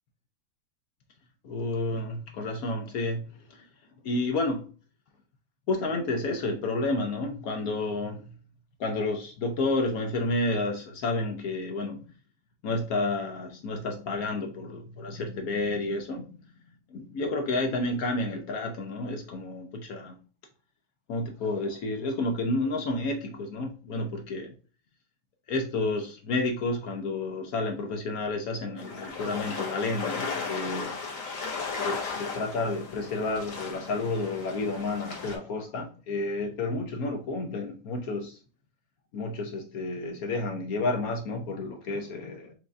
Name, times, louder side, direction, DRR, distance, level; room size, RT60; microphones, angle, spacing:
voice 1, 1.4-3.6 4.0-4.7 5.7-8.4 8.8-12.1 12.6-16.2 16.9-20.2 21.1-24.5 25.5-31.2 31.8-38.4 39.1-42.5, left 2 dB, 70° left, 0.8 m, -30 dB
sound 1, 28.8-35.4, left 4 dB, 50° left, 1.3 m, -36 dB
4.7 x 2.6 x 3.2 m
omnidirectional pair, 2.2 m